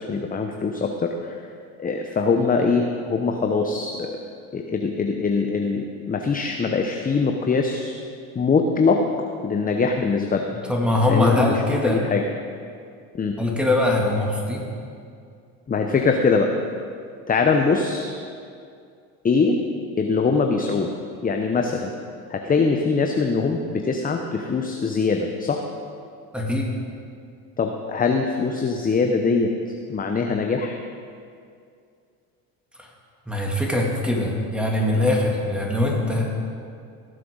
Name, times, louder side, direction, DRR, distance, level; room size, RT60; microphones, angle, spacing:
voice 1, 0.0-1.3 1.8-4.2 4.5-7.9 8.3-9.0 9.4-10.5 11.1-12.2 13.1-13.4 15.7-16.5 17.3-18.1 19.2-19.6 20.0-20.9 21.2-21.9 22.3-25.6 27.6-29.5 29.9-30.8, left 4 dB, 20° left, 4 dB, 0.8 m, -22 dB
voice 2, 10.7-12.0 13.4-14.6 26.3-26.7 33.3-36.3, left 1 dB, ahead, -2 dB, 2.6 m, -22 dB
18.0 x 7.7 x 3.9 m, 2.4 s
hypercardioid pair, 75°, 44 cm